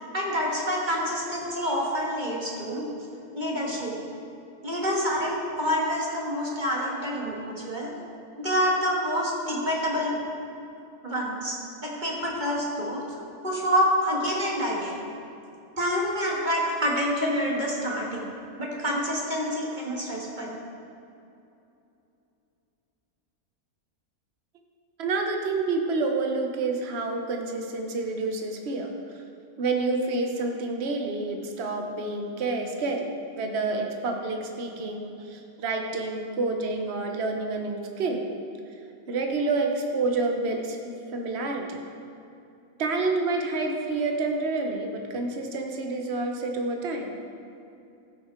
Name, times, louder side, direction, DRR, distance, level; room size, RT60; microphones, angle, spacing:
voice 1, 0.1-2.9 3.3-3.9 4.6-7.9 8.4-10.2 11.0-11.6 11.8-13.0 13.4-15.1 15.8-18.3 18.6-20.5, equal, 35° right, -3 dB, 1.6 m, -27 dB
voice 2, 25.0-29.2 29.6-33.1 33.4-38.2 39.1-41.8 42.8-47.1, right 3 dB, 50° right, 3 dB, 1.2 m, -28 dB
14.0 x 6.3 x 4.4 m, 2.7 s
omnidirectional pair, 1.5 m